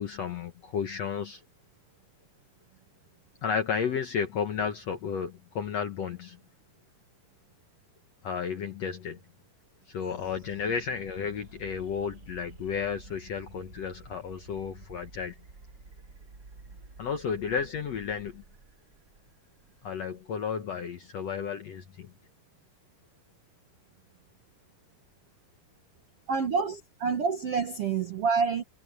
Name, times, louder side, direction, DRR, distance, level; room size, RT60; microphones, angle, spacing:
voice 1, 0.0-1.4 3.4-6.4 8.2-9.2 9.9-15.3 17.0-18.4 19.8-22.1, left 6 dB, 65° left, 1.7 m, -32 dB
sound 1, 10.0-20.7, right 3 dB, 30° right, 2.5 m, -51 dB
voice 2, 26.3-28.6, right 5 dB, 65° right, 1.5 m, -27 dB
omnidirectional pair, 4.4 m